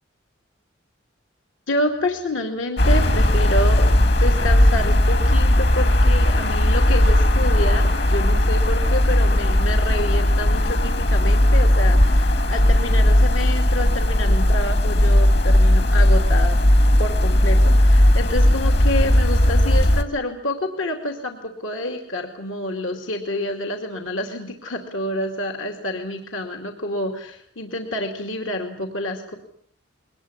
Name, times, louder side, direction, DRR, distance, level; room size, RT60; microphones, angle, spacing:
voice 1, 1.7-16.6 17.0-29.4, left 1 dB, 85° left, 4 dB, 2.5 m, -28 dB
sound 1, 2.8-20.0, left 1 dB, 60° left, 1.8 m, -17 dB
22.5 x 19.5 x 9.7 m, 0.67 s
head